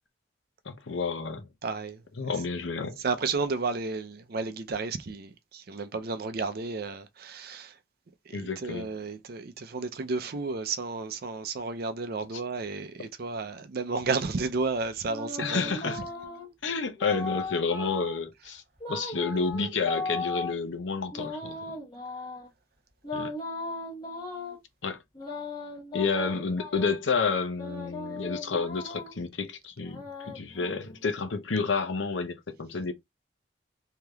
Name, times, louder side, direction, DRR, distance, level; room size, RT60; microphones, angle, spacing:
voice 1, 0.7-1.4 2.2-3.0 8.3-8.9 15.4-16.0 16.6-18.6 18.9-21.6 23.1-23.3 24.8-25.0 25.9-32.9, left 4 dB, 75° left, 0.7 m, -30 dB
voice 2, 1.6-2.0 3.0-7.7 8.3-15.9, right 4 dB, 50° right, 0.5 m, -32 dB
sound 1, 14.2-16.5 17.0-18.2 18.8-20.5 21.1-22.5 23.0-24.6 25.2-27.0 27.6-29.2 29.8-31.2, left 3 dB, 20° left, 1.1 m, -37 dB
3.3 x 2.8 x 2.3 m
head